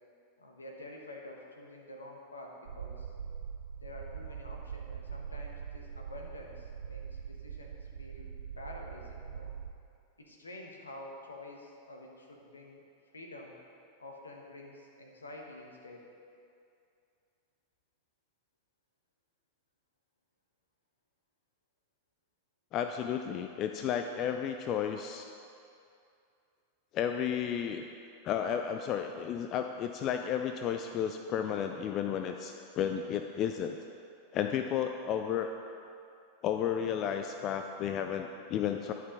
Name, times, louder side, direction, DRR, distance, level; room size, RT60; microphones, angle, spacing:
voice 1, 0.4-3.1 3.8-8.3 8.6-9.5 10.2-12.8 13.1-13.5 14.0-16.1, left 1 dB, 75° left, 0 dB, 1.1 m, -48 dB
sound 1, 2.7-9.7, right 7 dB, 70° right, 0.4 m, -43 dB
voice 2, 22.7-25.3 26.9-27.8 28.2-33.8 34.3-35.5 36.4-38.9, left 8 dB, 35° left, 6 dB, 0.3 m, -32 dB
10.5 x 5.8 x 3.8 m, 2.5 s
figure-of-eight pair, 90°, 0 cm